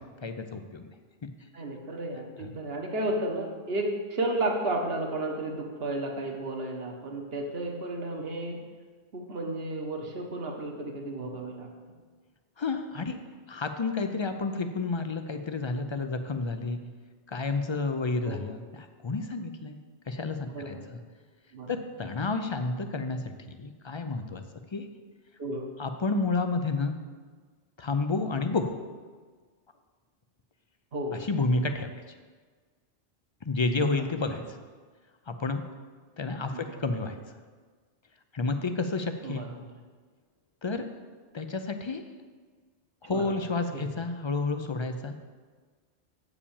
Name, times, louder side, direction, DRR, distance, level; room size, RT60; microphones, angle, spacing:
voice 1, 0.2-0.9 2.4-2.5 12.6-13.2 13.5-16.8 17.3-19.8 20.1-21.0 21.7-24.4 24.7-24.9 25.8-26.9 27.8-28.8 31.2-31.9 33.5-34.6 35.3-35.6 36.2-37.2 38.3-39.5 40.6-40.9 41.3-42.0 43.0-45.1, left 3 dB, 45° left, 7 dB, 0.3 m, -30 dB
voice 2, 1.5-8.6 9.1-11.7 18.2-18.4 20.5-20.9 21.5-21.8 25.4-25.7 30.9-31.2 33.9-34.4 36.5-36.8 39.2-39.6 43.1-43.3 43.7-43.9, right 1 dB, 60° right, 2 dB, 1.4 m, -33 dB
8.4 x 4.9 x 7.1 m, 1.5 s
omnidirectional pair, 1.2 m